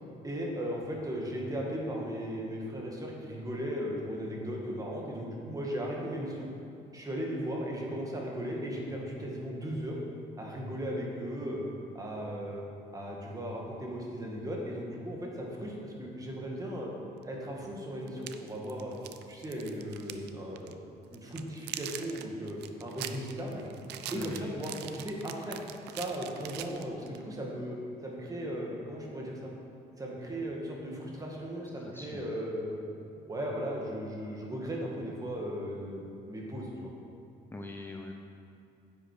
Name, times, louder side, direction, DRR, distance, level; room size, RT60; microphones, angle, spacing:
voice 1, 0.2-6.5 6.9-10.0 10.4-11.6 11.9-12.6 12.9-16.9 17.2-18.9 19.3-20.7 21.1-23.7 24.1-25.6 25.9-27.8 28.0-29.5 30.0-32.9 33.3-36.9, equal, 20° right, -2 dB, 2.0 m, -37 dB
sound 1, 17.2-17.3 18.1-20.3 20.6-20.7 21.1-27.2, right 11 dB, 80° right, 0.6 m, -42 dB
voice 2, 24.1-24.6 31.8-32.3 37.5-38.1, left 2 dB, 10° left, 2 dB, 0.6 m, -42 dB
10.0 x 7.8 x 5.0 m, 2.7 s
cardioid pair, 110°, 17 cm